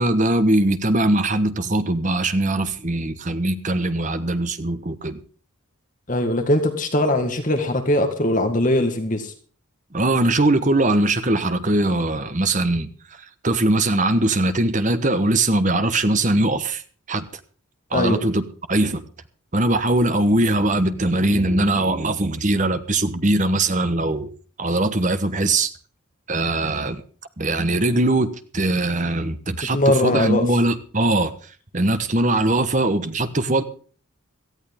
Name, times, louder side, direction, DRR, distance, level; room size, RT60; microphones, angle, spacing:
voice 1, 0.0-5.2 9.9-12.9 13.4-16.8 17.1-17.3 17.9-18.4 18.7-19.0 19.5-24.3 24.6-25.7 26.3-27.0 27.4-31.3 31.7-33.6, right 2 dB, 35° right, 10 dB, 1.2 m, -21 dB
voice 2, 6.1-9.3 17.9-18.2 29.6-30.4, left 1 dB, 35° left, 6 dB, 1.8 m, -21 dB
17.5 x 14.0 x 3.6 m, 0.41 s
head